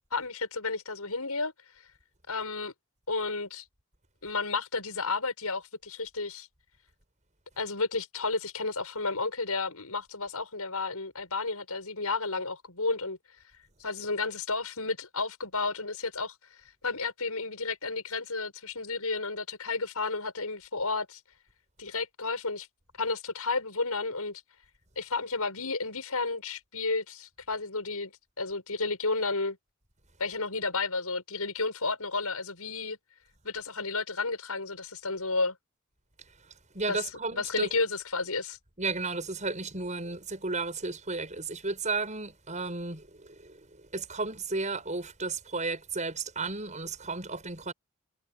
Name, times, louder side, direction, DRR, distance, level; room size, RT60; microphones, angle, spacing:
voice 1, 0.1-1.5 2.3-2.7 3.1-3.6 4.2-6.5 7.6-13.2 13.8-16.3 16.8-21.2 21.8-22.7 23.0-24.4 25.0-28.1 28.4-29.6 30.2-33.0 33.4-35.6 36.9-38.6, left 3 dB, 90° left, 7.3 m, -32 dB
voice 2, 36.7-37.7 38.8-47.7, right 3 dB, 35° right, 7.2 m, -33 dB
head